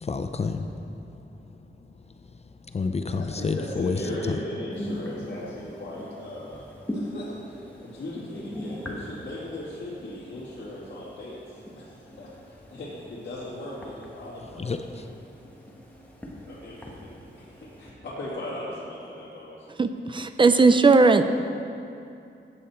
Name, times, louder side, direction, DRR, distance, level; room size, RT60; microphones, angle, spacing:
voice 1, 0.0-0.6 2.7-4.0 14.6-14.8, left 4 dB, 35° left, 7 dB, 0.5 m, -28 dB
voice 2, 3.2-14.8 16.5-19.7, left 1 dB, 60° left, -10 dB, 2.4 m, -38 dB
sound 1, 4.7-17.9, equal, 10° left, 1.3 m, -41 dB
voice 3, 19.8-21.2, right 4 dB, 25° right, 9 dB, 0.4 m, -18 dB
14.0 x 8.5 x 4.4 m, 2.6 s
wide cardioid pair, 180°, 19 cm